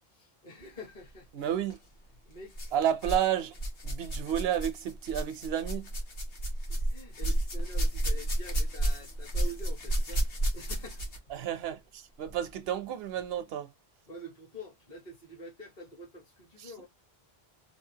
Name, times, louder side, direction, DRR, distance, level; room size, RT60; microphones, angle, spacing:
voice 1, 0.1-1.5 2.3-2.6 6.7-11.1 14.1-16.9, equal, 45° left, 1.1 m, -47 dB
voice 2, 1.3-1.8 2.7-3.5 3.8-5.9 11.3-13.7 16.6-16.7, right 10 dB, 75° right, 0.8 m, -31 dB
sound 1, 1.6-1.8 2.5-3.3 3.5-11.3 12.3-12.4 13.2-13.3, right 1 dB, 70° left, 1.3 m, -31 dB
3.2 x 2.3 x 2.6 m
omnidirectional pair, 1.0 m